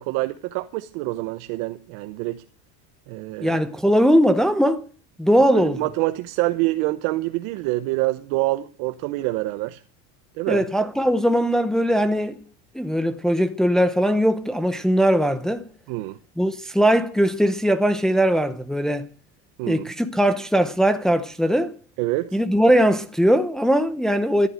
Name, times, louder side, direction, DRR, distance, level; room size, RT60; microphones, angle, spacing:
voice 1, 0.0-2.4 3.1-3.6 5.4-9.8 10.4-10.6 15.9-16.2 19.6-19.9 22.0-22.4, right 19 dB, 70° right, 0.9 m, -26 dB
voice 2, 3.4-4.9 5.2-5.8 10.5-12.4 12.7-15.7 16.4-19.1 19.7-21.7 22.3-24.5, equal, ahead, 0.8 m, -20 dB
14.0 x 11.0 x 7.6 m
cardioid pair, 155°, 36 cm